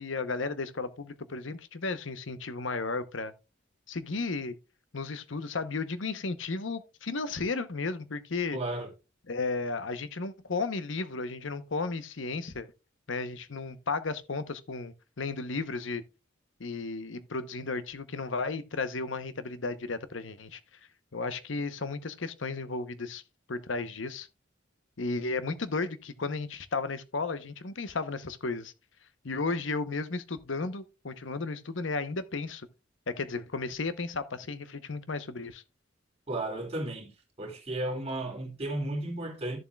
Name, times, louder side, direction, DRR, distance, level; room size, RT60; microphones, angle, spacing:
voice 1, 0.0-3.3 3.9-4.6 4.9-8.6 9.3-12.7 13.1-16.0 16.6-20.6 21.1-23.2 23.5-24.3 25.0-28.7 29.2-32.7 33.1-35.6, left 3 dB, 70° left, 0.9 m, -34 dB
voice 2, 8.5-8.9 36.3-37.1 37.4-39.6, right 1 dB, 30° right, 2.4 m, -33 dB
13.5 x 7.2 x 2.3 m
head